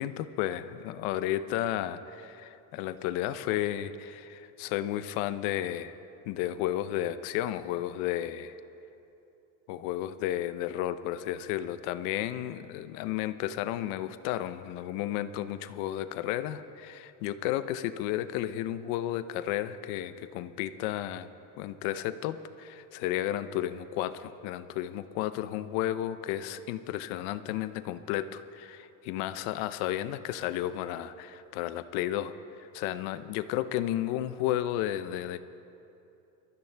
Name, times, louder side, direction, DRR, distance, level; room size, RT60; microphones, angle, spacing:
voice 1, 0.0-6.0 6.3-8.6 9.7-21.3 21.6-32.3 32.7-35.4, left 12 dB, 85° left, 13 dB, 0.7 m, -33 dB
22.5 x 13.5 x 3.4 m, 2.8 s
cardioid pair, 175°, 35 cm